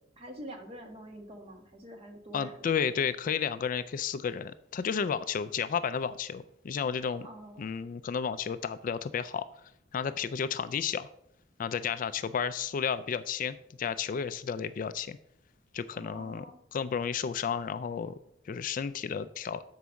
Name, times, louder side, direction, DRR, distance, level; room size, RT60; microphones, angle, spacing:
voice 1, 0.2-2.7 7.2-7.7 15.9-16.6, equal, 30° right, 3 dB, 1.3 m, -46 dB
voice 2, 2.3-7.3 7.6-9.5 9.9-11.1 11.6-15.2 15.7-16.5 16.7-18.1 18.5-19.6, left 7 dB, 45° left, 13 dB, 0.3 m, -32 dB
6.9 x 4.6 x 6.2 m, 0.73 s
head